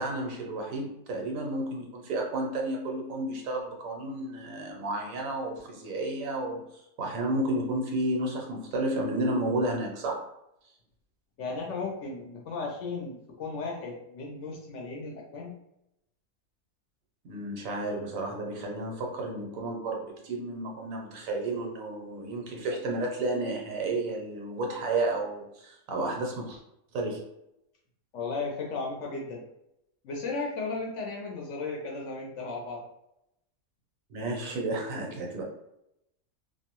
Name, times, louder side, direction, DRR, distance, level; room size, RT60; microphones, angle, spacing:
voice 1, 0.0-10.2 17.2-26.6 26.9-27.2 34.1-35.4, right 2 dB, 70° right, 0 dB, 1.0 m, -32 dB
voice 2, 11.4-15.5 28.1-29.4 30.0-32.8, left 4 dB, 65° left, -1 dB, 0.8 m, -35 dB
2.5 x 2.2 x 2.8 m, 0.82 s
omnidirectional pair, 1.5 m